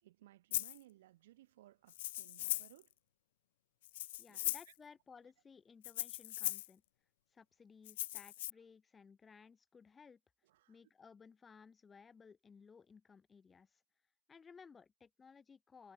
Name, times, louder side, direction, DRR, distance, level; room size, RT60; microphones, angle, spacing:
voice 1, 0.0-2.9 4.3-4.7 10.4-10.8, right 15 dB, 65° right, 3.6 m, -62 dB
Rattle (instrument), 0.5-0.8 1.9-2.8 3.8-4.7 5.8-6.7 7.9-8.5, left 15 dB, 65° left, 0.4 m, -39 dB
voice 2, 4.2-6.8 7.3-10.2 10.7-13.8 14.3-15.9, left 5 dB, 25° left, 7.0 m, -59 dB
figure-of-eight pair, 75°, 0 cm